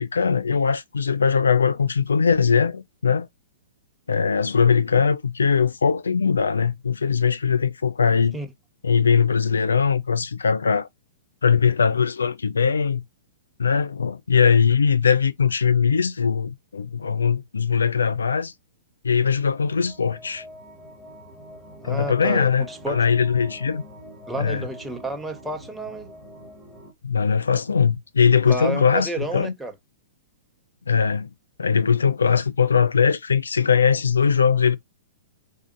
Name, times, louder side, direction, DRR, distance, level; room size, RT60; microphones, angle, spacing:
voice 1, 0.0-3.3 4.1-8.4 8.8-10.9 11.4-13.0 13.6-18.5 19.0-20.4 21.8-23.8 24.4-24.7 27.0-29.5 30.9-31.3 31.6-34.8, left 6 dB, 85° left, 0.4 m, -20 dB
sound 1, 19.5-26.9, equal, 15° left, 1.7 m, -44 dB
voice 2, 21.8-23.0 24.3-26.1 28.5-29.7, right 2 dB, 5° right, 0.8 m, -30 dB
4.8 x 2.7 x 2.5 m
hypercardioid pair, 120°, 0 cm